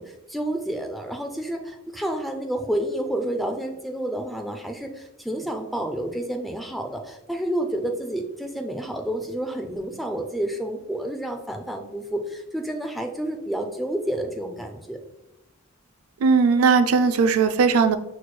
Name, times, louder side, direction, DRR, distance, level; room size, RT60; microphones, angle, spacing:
voice 1, 0.0-15.0, right 1 dB, ahead, 4 dB, 0.3 m, -29 dB
voice 2, 16.2-18.0, right 5 dB, 75° right, 10 dB, 0.3 m, -18 dB
6.1 x 3.1 x 2.2 m, 0.90 s
head